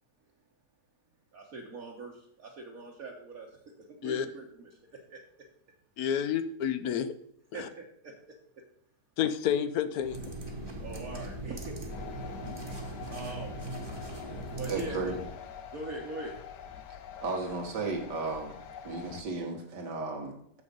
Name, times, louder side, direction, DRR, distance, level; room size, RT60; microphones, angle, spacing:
voice 1, 1.3-3.5 4.0-4.4 5.1-5.2 7.5-8.1 10.8-11.9 13.1-13.5 14.6-15.1 15.7-16.3, right 3 dB, 60° right, 1.4 m, -41 dB
voice 2, 6.0-7.1 7.5-7.7 9.2-10.3, left 9 dB, 70° left, 1.1 m, -30 dB
sound 1, 10.0-15.3, right 1 dB, 15° right, 1.2 m, -40 dB
sound 2, 11.9-19.2, left 8 dB, 85° left, 1.4 m, -46 dB
voice 3, 14.7-15.2 17.2-18.5 18.8-20.6, right 3 dB, 90° right, 2.1 m, -34 dB
7.4 x 6.3 x 5.2 m
omnidirectional pair, 1.8 m